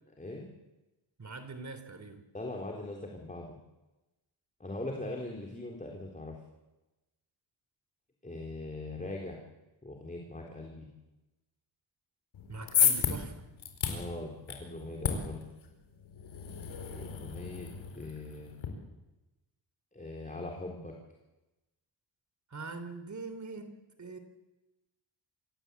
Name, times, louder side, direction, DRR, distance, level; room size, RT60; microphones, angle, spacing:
voice 1, 0.2-0.5 2.3-3.6 4.6-6.4 8.2-9.4 9.8-10.9 13.9-15.5 16.9-18.6 19.9-20.9, left 2 dB, 15° left, 0 dB, 3.9 m, -41 dB
voice 2, 1.2-2.2 12.5-13.4 22.5-24.2, right 3 dB, 35° right, 9 dB, 3.3 m, -43 dB
sound 1, 12.3-18.7, left 7 dB, 75° left, 4.7 m, -33 dB
26.5 x 17.5 x 8.4 m, 1.0 s
cardioid pair, 95°, 46 cm